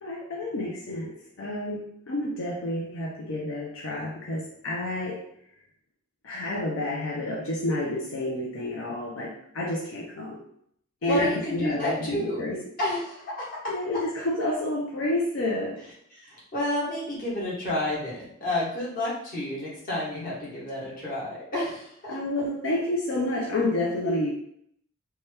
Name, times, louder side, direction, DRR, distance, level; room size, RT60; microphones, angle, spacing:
voice 1, 0.0-5.2 6.2-10.4 11.0-12.6 13.7-15.8 22.1-24.3, left 1 dB, 75° left, -3 dB, 0.5 m, -29 dB
voice 2, 11.1-12.4 12.8-13.6 16.1-22.4, left 1 dB, 45° left, -7 dB, 1.2 m, -30 dB
2.8 x 2.2 x 3.3 m, 0.69 s
head